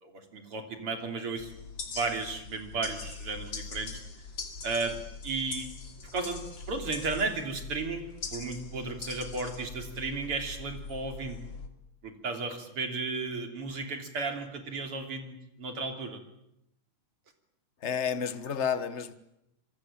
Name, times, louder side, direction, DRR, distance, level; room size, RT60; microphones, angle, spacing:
voice 1, 0.0-1.5 1.9-4.0 4.6-5.0 5.2-5.7 6.1-11.4 12.0-16.2, right 3 dB, 45° right, 3.9 m, -34 dB
sound 1, 1.4-11.7, left 4 dB, 40° left, 3.2 m, -42 dB
voice 2, 17.8-19.1, left 7 dB, 60° left, 0.7 m, -30 dB
26.5 x 25.0 x 8.8 m
omnidirectional pair, 3.4 m